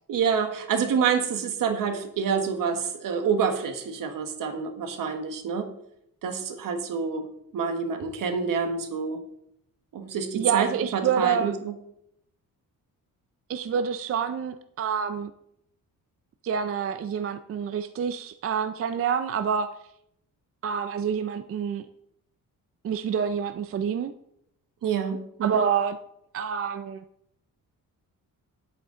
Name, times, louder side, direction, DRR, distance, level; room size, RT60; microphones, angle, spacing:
voice 1, 0.1-5.7 6.2-7.3 7.5-9.2 9.9-11.7 24.8-25.7, right 6 dB, 70° right, 6 dB, 1.5 m, -27 dB
voice 2, 10.3-11.5 13.5-15.3 16.4-19.7 20.6-21.9 22.8-24.1 25.4-26.0 26.3-27.0, right 7 dB, 40° right, 9 dB, 0.5 m, -27 dB
10.5 x 8.5 x 3.8 m, 0.75 s
wide cardioid pair, 160°, 34 cm